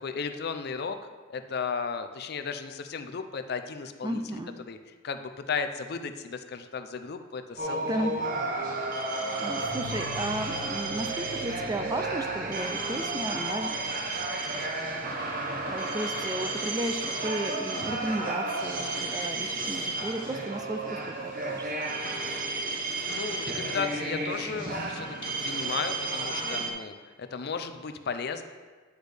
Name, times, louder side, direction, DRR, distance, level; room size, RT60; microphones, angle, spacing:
voice 1, 0.0-1.0 1.3-4.2 4.6-4.8 5.0-8.1 23.1-28.4, left 5 dB, 50° left, 8 dB, 0.5 m, -35 dB
voice 2, 4.0-4.6 7.8-8.2 9.4-13.7 15.5-21.7, right 1 dB, 20° right, 6 dB, 0.4 m, -34 dB
sound 1, 7.6-26.7, right 2 dB, 45° right, 0.9 m, -32 dB
9.8 x 6.2 x 3.4 m, 1.4 s
head